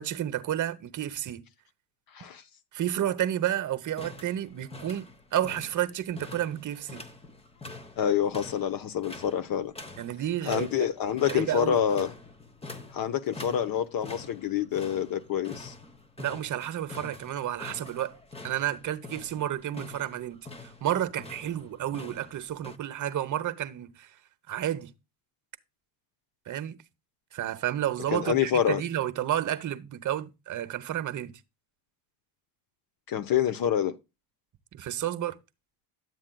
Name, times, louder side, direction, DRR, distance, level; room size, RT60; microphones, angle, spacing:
voice 1, 0.0-1.4 2.7-7.1 10.0-10.9 11.3-11.8 16.2-18.2 18.4-24.1 24.5-24.9 26.5-26.8 27.3-31.3 34.7-35.4, right 11 dB, 40° right, 0.9 m, -31 dB
sound 1, 3.9-22.8, left 3 dB, 15° left, 1.0 m, -46 dB
voice 2, 8.0-9.7 10.5-12.1 12.9-15.7 28.1-28.8 33.1-34.0, left 9 dB, 50° left, 0.9 m, -27 dB
10.5 x 7.4 x 2.3 m
supercardioid pair, 90°, 45 cm